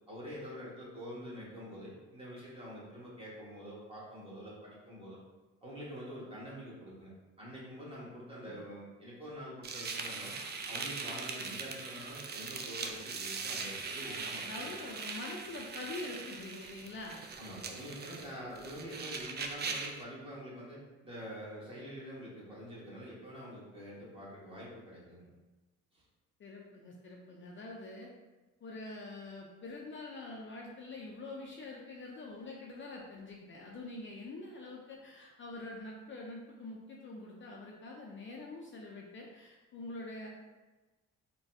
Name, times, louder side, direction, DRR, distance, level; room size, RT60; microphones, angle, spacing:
voice 1, 0.1-5.2 5.6-7.1 7.4-10.3 10.7-14.7 17.4-25.3 25.9-26.0, equal, 20° right, -7 dB, 1.4 m, -46 dB
sound 1, 9.6-20.0, right 4 dB, 35° right, 0.4 m, -41 dB
voice 2, 14.0-17.3 26.4-28.1 28.6-40.3, left 2 dB, 40° left, -1 dB, 0.5 m, -45 dB
3.9 x 2.3 x 2.6 m, 1.2 s
cardioid pair, 90°, 30 cm